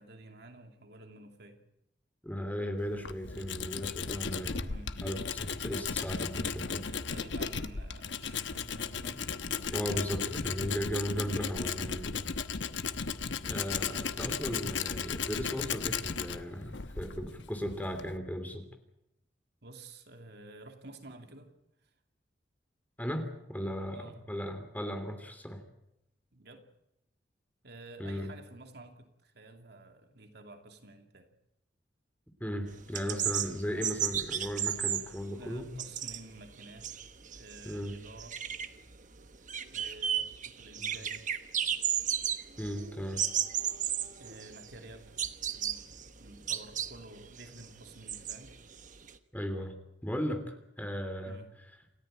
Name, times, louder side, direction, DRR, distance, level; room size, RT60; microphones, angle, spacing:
voice 1, 0.0-1.6 4.6-5.0 6.7-10.4 11.2-11.5 13.8-14.1 16.3-16.4 19.6-21.5 21.8-21.9 23.9-24.2 26.3-26.7 27.6-31.3 33.7-33.9 35.3-36.9 37.3-38.4 39.6-41.3 44.2-45.2 45.4-48.5 51.2-51.5, right 2 dB, 65° right, 5 dB, 2.7 m, -51 dB
voice 2, 2.2-4.6 5.0-6.8 9.7-12.2 13.4-18.7 23.0-25.6 28.0-28.3 32.4-35.7 37.6-38.0 40.8-41.0 42.6-43.2 49.3-49.7 50.0-51.4, equal, 10° left, 7 dB, 3.0 m, -36 dB
Tools, 2.8-18.2, left 6 dB, 80° left, 1.1 m, -36 dB
sound 1, 32.7-49.1, right 9 dB, 45° right, 1.2 m, -34 dB
28.5 x 14.0 x 9.1 m, 0.85 s
head